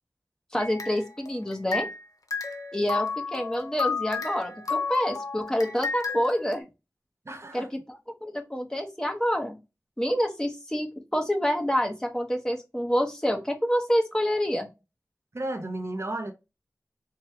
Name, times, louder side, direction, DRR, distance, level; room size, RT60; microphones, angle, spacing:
voice 1, 0.5-1.9 2.7-6.6 7.5-9.6 10.0-14.7, equal, 10° left, 1.0 m, -27 dB
sound 1, 0.6-2.0 2.3-6.6, left 4 dB, 75° left, 0.8 m, -32 dB
voice 2, 7.3-7.7 15.3-16.3, right 1 dB, 50° right, 0.7 m, -33 dB
4.6 x 2.3 x 4.2 m
wide cardioid pair, 55°, 6 cm